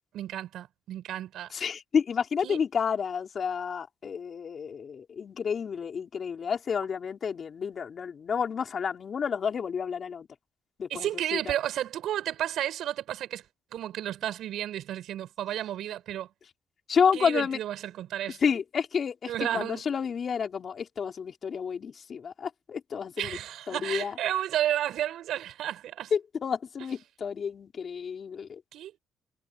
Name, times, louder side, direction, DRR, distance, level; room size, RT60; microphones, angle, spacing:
voice 1, 0.1-1.5 2.4-2.6 10.9-13.4 13.7-16.3 17.1-18.4 19.3-19.8 23.2-26.1 28.7-28.9, right 12 dB, 80° right, 6.5 m, -32 dB
voice 2, 1.5-10.3 10.8-11.5 16.9-17.6 18.4-23.4 23.7-24.2 26.1-28.6, left 6 dB, 50° left, 4.7 m, -30 dB
cardioid pair, 90°, 0 cm